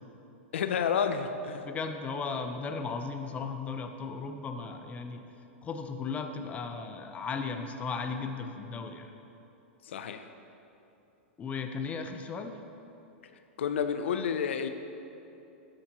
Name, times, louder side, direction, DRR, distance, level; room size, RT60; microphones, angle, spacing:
voice 1, 0.5-1.7 9.9-10.2 13.6-14.7, left 7 dB, 80° left, 8 dB, 0.6 m, -30 dB
voice 2, 1.7-5.3 5.6-9.1 11.4-12.6, left 4 dB, 20° left, 6 dB, 0.7 m, -36 dB
13.0 x 9.0 x 3.0 m, 2.9 s
hypercardioid pair, 125°, 6 cm